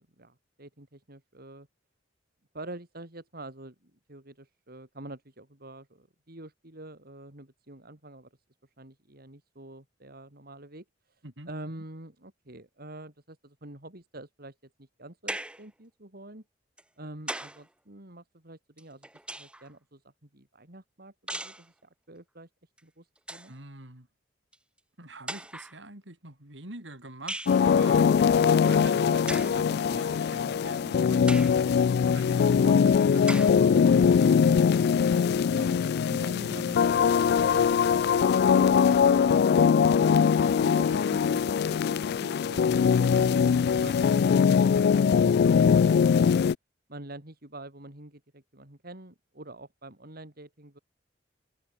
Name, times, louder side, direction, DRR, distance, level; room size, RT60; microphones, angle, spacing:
voice 1, 0.0-1.7 2.5-8.3 8.6-16.4 17.0-19.1 19.4-22.5 22.8-23.5 35.5-39.4 40.0-45.4 45.7-46.4 46.9-50.8, right 1 dB, 55° right, 3.8 m, -46 dB
sound 1, 15.3-15.7 16.8-17.7 18.8-19.7 21.3-21.7 22.8-22.9 23.2-23.5 24.5-24.6 25.3-25.8 27.3-27.6 29.3-29.6 30.3-30.4 31.3-31.6 32.3-32.4 33.3-33.6, right 1 dB, 5° right, 1.6 m, -37 dB
voice 2, 23.5-24.1 25.0-28.1 28.6-31.7 32.0-34.6, right 2 dB, 70° right, 5.1 m, -45 dB
sound 2, 27.5-46.5, left 6 dB, 60° left, 0.3 m, -22 dB
head